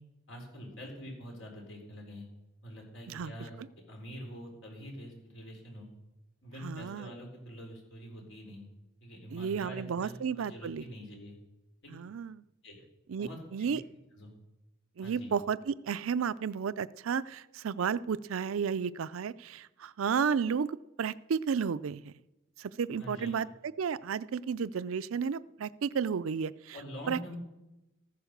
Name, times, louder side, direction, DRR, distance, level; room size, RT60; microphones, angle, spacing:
voice 1, 0.3-2.3 2.6-3.6 3.9-5.9 6.4-8.7 9.0-11.4 11.8-12.1 12.6-12.8 13.2-13.8 14.2-14.3 15.0-15.3 23.0-23.3 26.7-27.4, equal, 70° left, 0 dB, 4.0 m, -45 dB
voice 2, 6.6-7.1 9.3-10.8 11.9-12.4 13.1-13.8 15.0-22.1 22.6-26.8 27.1-27.4, right 6 dB, 85° right, 17 dB, 0.4 m, -33 dB
14.0 x 9.6 x 6.6 m, 0.99 s
head